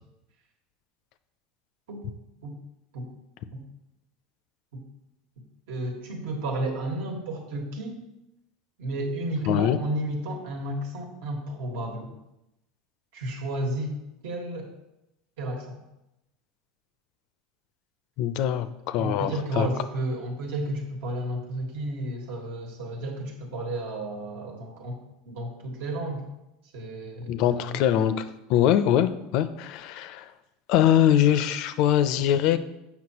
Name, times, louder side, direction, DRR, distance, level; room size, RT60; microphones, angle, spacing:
voice 1, 5.7-8.0 8.8-12.1 13.1-13.9 14.2-14.7 15.4-15.8 19.0-25.0 25.2-26.2 26.7-28.0, right 1 dB, 75° right, 1 dB, 1.5 m, -32 dB
voice 2, 9.5-9.8 18.2-19.7 27.3-28.2 28.5-30.3 30.7-32.6, left 10 dB, 50° left, 12 dB, 0.4 m, -22 dB
7.7 x 5.8 x 2.9 m, 0.90 s
supercardioid pair, 165°, 0 cm